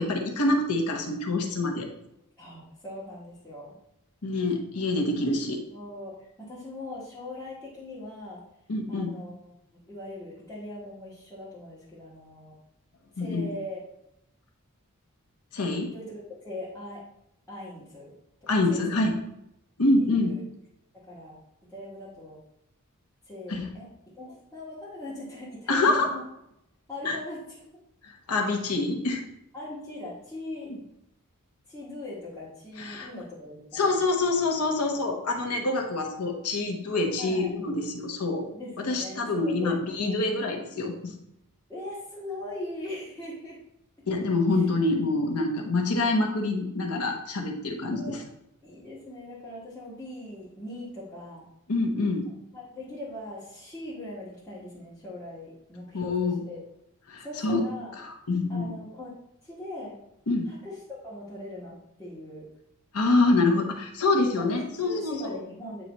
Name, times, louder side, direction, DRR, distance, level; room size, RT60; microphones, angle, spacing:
voice 1, 0.0-1.9 4.2-5.6 8.7-9.1 13.2-13.5 15.5-15.9 18.5-19.1 19.8-20.3 23.5-23.7 25.7-26.1 27.0-27.2 28.0-29.2 32.8-33.1 33.7-38.5 38.8-41.1 44.1-48.2 51.7-52.3 55.9-56.4 57.1-57.6 58.3-58.7 60.3-60.5 62.9-65.4, left 2 dB, 80° left, 3 dB, 1.1 m, -26 dB
voice 2, 2.4-3.8 5.7-8.4 8.9-9.4 9.7-12.5 13.1-13.8 15.9-17.0 17.5-18.1 18.4-19.1 20.0-20.4 20.9-21.4 21.7-22.4 23.2-23.9 24.1-26.2 26.9-27.4 29.5-30.7 31.7-33.9 37.2-37.5 38.5-39.8 41.7-43.6 44.5-44.6 47.9-48.2 48.6-51.5 52.5-56.6 57.2-57.9 58.5-60.0 60.4-62.5 64.1-65.8, left 1 dB, 10° left, -12 dB, 1.7 m, -40 dB
9.1 x 3.2 x 4.0 m, 0.82 s
head